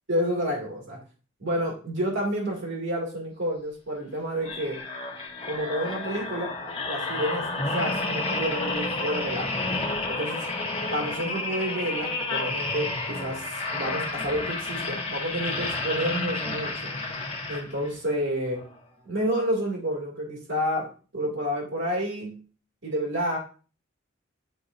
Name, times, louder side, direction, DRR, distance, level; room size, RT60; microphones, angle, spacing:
voice 1, 0.1-1.0 1.4-4.8 5.4-6.5 6.9-9.5 10.1-10.5 10.9-16.9 17.5-18.7 19.1-22.4 22.8-23.4, equal, 60° right, -3 dB, 2.2 m, -30 dB
sound 1, 4.4-18.0 18.5-18.7, left 2 dB, 30° left, 1.0 m, -31 dB
9.8 x 4.6 x 2.6 m, 0.37 s
head